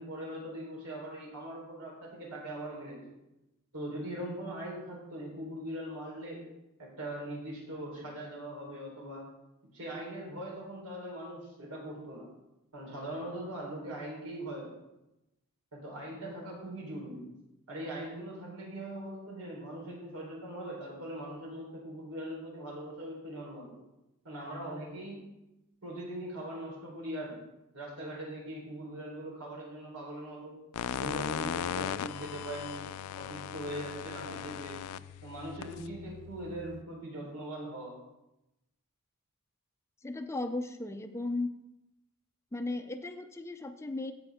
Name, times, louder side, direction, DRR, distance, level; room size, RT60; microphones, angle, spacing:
voice 1, 0.0-3.0 3.7-6.4 6.8-9.3 9.7-12.3 12.7-14.8 15.7-17.3 17.7-23.8 24.2-25.2 25.8-27.4 27.7-30.6 30.9-32.9 33.1-34.8 35.2-38.0, right 1 dB, 85° right, -3 dB, 3.9 m, -41 dB
sound 1, 30.7-36.8, left 9 dB, 90° left, 0.3 m, -38 dB
voice 2, 40.0-41.5 42.5-44.1, left 2 dB, 10° left, 8 dB, 0.4 m, -36 dB
15.5 x 5.2 x 3.6 m, 0.93 s
head